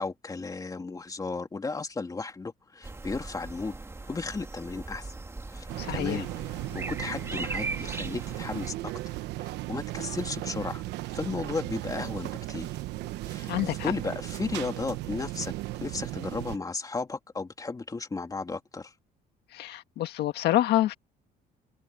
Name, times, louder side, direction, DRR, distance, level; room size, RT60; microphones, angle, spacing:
voice 1, 0.0-3.7 4.1-5.1 5.5-8.7 9.1-10.8 11.1-12.7 13.3-15.5 15.8-18.9, left 3 dB, 20° left, 2.6 m, -35 dB
sound 1, 2.8-8.7, right 3 dB, 15° right, 2.1 m, -39 dB
sound 2, 5.7-16.6, right 17 dB, 85° right, 1.1 m, -36 dB
voice 2, 5.8-6.2 13.5-13.9 19.5-20.9, left 14 dB, 75° left, 1.7 m, -27 dB
cardioid pair, 110°, 17 cm